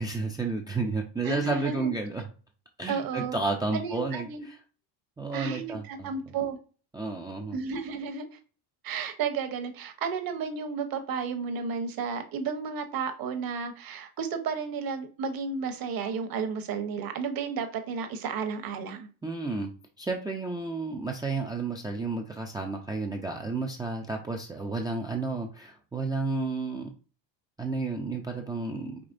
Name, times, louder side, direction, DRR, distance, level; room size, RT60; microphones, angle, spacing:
voice 1, 0.0-2.3 2.8-4.6 5.2-6.1 6.9-7.6 19.2-19.7 20.0-26.9 27.6-29.0, right 3 dB, 10° right, 1 dB, 0.4 m, -31 dB
voice 2, 1.2-1.9 2.9-3.4 3.7-4.4 5.3-6.6 7.5-8.4 8.8-19.1, right 6 dB, 45° right, 7 dB, 1.0 m, -32 dB
5.0 x 3.2 x 2.5 m, 0.37 s
supercardioid pair, 105°, 50 cm